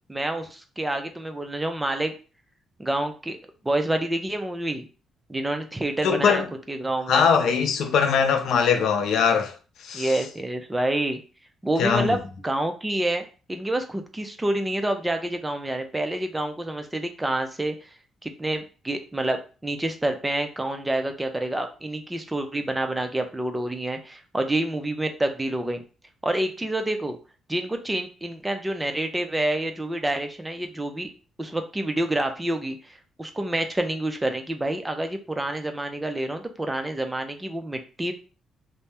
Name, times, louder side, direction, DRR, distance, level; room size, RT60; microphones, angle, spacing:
voice 1, 0.1-2.1 2.8-3.4 3.6-4.8 5.3-6.4 6.7-7.3 9.9-11.2 11.6-17.7 18.2-25.8 26.2-27.2 27.5-31.1 31.4-38.1, right 1 dB, 15° right, 0.5 m, -28 dB
voice 2, 6.0-6.5 7.1-9.5 9.8-10.1 11.8-12.2, left 6 dB, 75° left, 0.5 m, -21 dB
2.7 x 2.1 x 3.4 m
cardioid pair, 90°, 0 cm